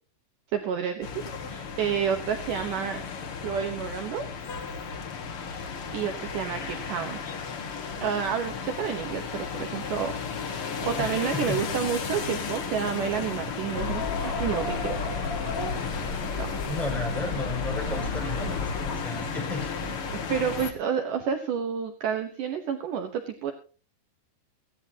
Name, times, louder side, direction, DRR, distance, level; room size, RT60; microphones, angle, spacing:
voice 1, 0.5-1.1 1.5-3.0 3.4-4.3 5.9-7.2 8.0-10.1 10.5-15.0 16.4-16.5 18.2-18.3 20.3-23.5, right 8 dB, 70° right, 5 dB, 2.0 m, -30 dB
sound 1, 1.0-20.7, left 5 dB, 75° left, 1.2 m, -34 dB
voice 2, 11.0-11.6 16.7-19.7, left 3 dB, ahead, 0 dB, 5.6 m, -33 dB
sound 2, 13.7-19.0, left 3 dB, 20° left, 3.9 m, -33 dB
18.5 x 16.0 x 2.9 m, 0.36 s
omnidirectional pair, 5.3 m